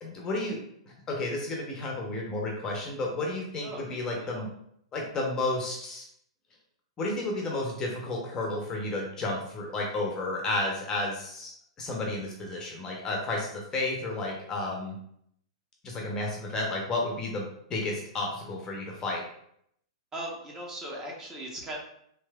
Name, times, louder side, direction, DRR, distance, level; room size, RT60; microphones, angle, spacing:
voice 1, 0.0-0.6 0.9-4.5 4.9-6.0 7.0-11.5 11.8-15.0 15.8-19.2, left 2 dB, 20° left, -1 dB, 0.6 m, -32 dB
voice 2, 3.6-4.0 4.3-4.4 20.1-21.8, right 1 dB, 20° right, -2 dB, 0.8 m, -38 dB
3.2 x 3.0 x 2.2 m, 0.71 s
figure-of-eight pair, 105°, 3 cm